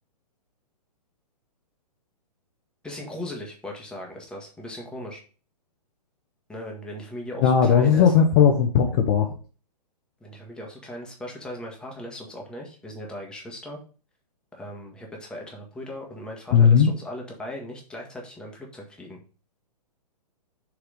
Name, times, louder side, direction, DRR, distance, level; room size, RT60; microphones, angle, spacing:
voice 1, 2.8-5.2 6.5-8.1 10.2-13.8 14.5-19.2, left 1 dB, 5° left, -1 dB, 1.8 m, -38 dB
voice 2, 7.4-9.3 16.5-16.9, left 7 dB, 35° left, 3 dB, 1.1 m, -17 dB
6.7 x 4.8 x 5.0 m, 0.37 s
figure-of-eight pair, 115°, 21 cm